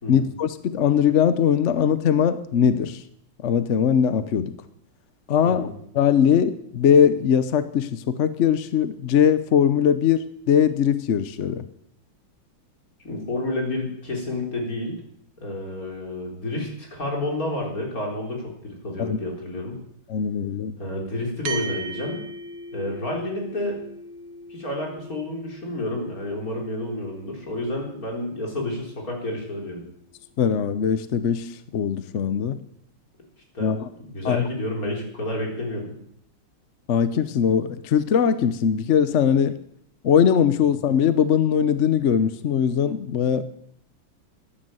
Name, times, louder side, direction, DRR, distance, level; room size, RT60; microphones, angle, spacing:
voice 1, 0.1-3.0 3.4-4.5 5.3-11.6 19.0-19.2 20.1-20.8 30.4-32.6 33.6-33.9 34.2-34.5 36.9-39.6 40.0-43.4, left 8 dB, 65° left, 12 dB, 0.7 m, -21 dB
voice 2, 13.0-15.0 15.4-19.8 20.8-22.2 22.7-23.8 24.5-29.8 33.5-35.9, left 1 dB, 40° left, -1 dB, 4.5 m, -30 dB
sound 1, 21.4-30.1, right 3 dB, 90° right, 2.0 m, -40 dB
14.0 x 10.5 x 7.8 m, 0.69 s
omnidirectional pair, 2.3 m